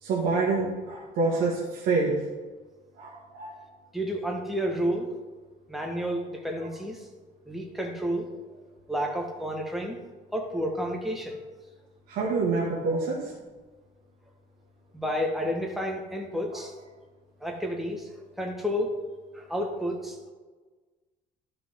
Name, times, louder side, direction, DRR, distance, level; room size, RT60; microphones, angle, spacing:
voice 1, 0.0-2.2 3.0-3.6 12.1-13.3, right 3 dB, 65° right, -3 dB, 1.7 m, -27 dB
voice 2, 3.9-5.1 5.7-7.1 7.5-8.3 8.9-10.0 10.3-11.4 14.9-16.7 17.4-18.1 18.4-19.0 19.3-20.3, equal, ahead, 1 dB, 1.3 m, -30 dB
12.0 x 5.9 x 3.6 m, 1.3 s
cardioid pair, 135°, 16 cm